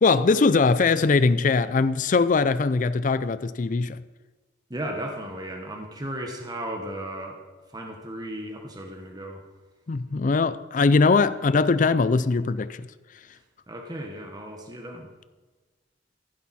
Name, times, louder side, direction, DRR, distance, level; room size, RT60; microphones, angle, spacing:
voice 1, 0.0-4.0 9.9-12.9, left 4 dB, 45° left, 0.4 m, -21 dB
voice 2, 4.7-7.4 7.7-9.4 13.7-15.1, right 1 dB, 25° right, 1.3 m, -35 dB
15.5 x 10.5 x 4.2 m
head